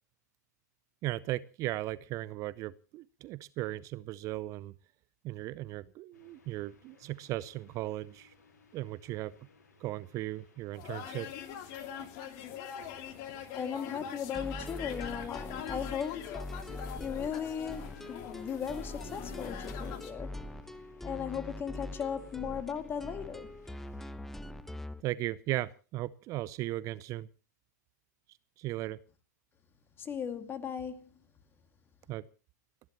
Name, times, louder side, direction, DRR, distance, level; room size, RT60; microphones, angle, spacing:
voice 1, 1.0-4.7 5.2-8.3 8.7-9.4 9.8-11.3 25.0-27.3 28.6-29.0 32.1-32.3, right 16 dB, 35° right, 18 dB, 0.6 m, -37 dB
sound 1, 6.1-24.1, left 4 dB, 70° left, 4.8 m, -63 dB
sound 2, 10.7-20.1, left 9 dB, 45° left, 2.6 m, -43 dB
voice 2, 13.5-16.4 17.0-20.5 21.0-23.5 30.0-31.1, left 7 dB, 25° left, 8 dB, 2.2 m, -37 dB
sound 3, 14.3-25.0, left 1 dB, 5° left, 1.1 m, -43 dB
29.5 x 11.0 x 3.0 m, 0.36 s
hypercardioid pair, 105°, 10 cm